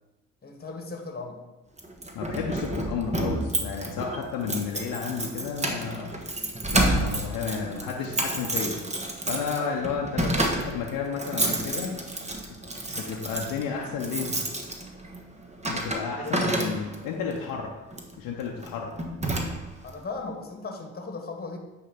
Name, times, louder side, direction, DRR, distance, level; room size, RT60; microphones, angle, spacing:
voice 1, 0.4-1.4 9.6-9.8 12.8-13.0 16.2-16.5 19.8-21.6, left 3 dB, 25° left, 3 dB, 1.5 m, -37 dB
Keys jangling, 1.8-17.1 17.9-18.2 18.6-18.7 19.0-19.9, right 1 dB, 20° right, 1.2 m, -30 dB
voice 2, 2.1-6.1 6.7-8.7 9.3-11.9 12.9-14.4 15.6-17.7 18.2-18.9, left 6 dB, 70° left, -1 dB, 0.9 m, -32 dB
9.2 x 3.3 x 4.9 m, 1.1 s
hypercardioid pair, 45°, 36 cm